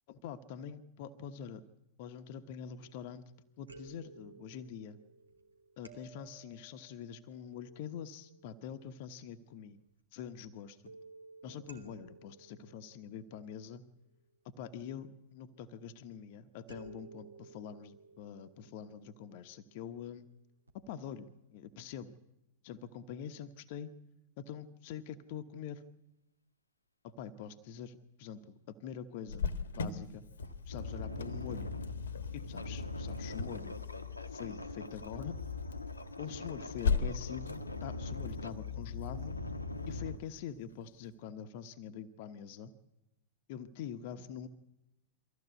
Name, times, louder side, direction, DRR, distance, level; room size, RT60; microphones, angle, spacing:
voice 1, 0.1-1.6 2.0-3.3 3.6-5.0 5.8-9.8 10.1-10.9 11.4-13.8 14.6-20.3 20.7-22.1 22.6-23.9 24.4-25.8 27.0-29.5 29.8-30.2 30.7-31.7 32.3-33.8 34.3-35.4 36.2-39.3 39.9-42.7 43.5-44.5, left 8 dB, 50° left, 10 dB, 1.1 m, -45 dB
sound 1, 2.8-3.3 3.7-9.3 10.9-14.1 16.7-19.9 20.7-20.8 21.1-21.2, right 3 dB, 85° right, 2.6 m, -56 dB
Cricket, 29.3-40.7, left 5 dB, 70° left, 1.3 m, -40 dB
sound 2, 30.3-40.2, left 3 dB, 90° left, 1.2 m, -41 dB
23.5 x 15.0 x 8.3 m, 0.92 s
figure-of-eight pair, 95°, 0 cm